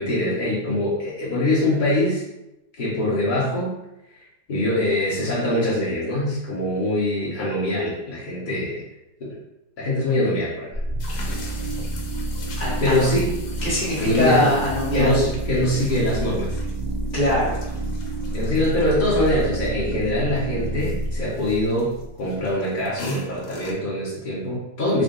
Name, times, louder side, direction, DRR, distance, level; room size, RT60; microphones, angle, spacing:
voice 1, 0.0-2.2 2.8-3.7 4.5-8.8 9.2-9.3 9.8-10.7 12.8-13.3 14.0-14.5 14.9-16.6 18.3-25.0, left 1 dB, 50° left, -7 dB, 0.5 m, -23 dB
sound 1, 10.7-22.5, right 1 dB, 75° right, 0.5 m, -29 dB
sound 2, 11.0-23.7, left 1 dB, 80° left, 1.4 m, -41 dB
voice 2, 12.6-13.2 13.6-15.2 17.1-17.5, left 1 dB, 30° left, -6 dB, 1.1 m, -22 dB
3.6 x 2.2 x 3.7 m, 0.90 s
omnidirectional pair, 2.0 m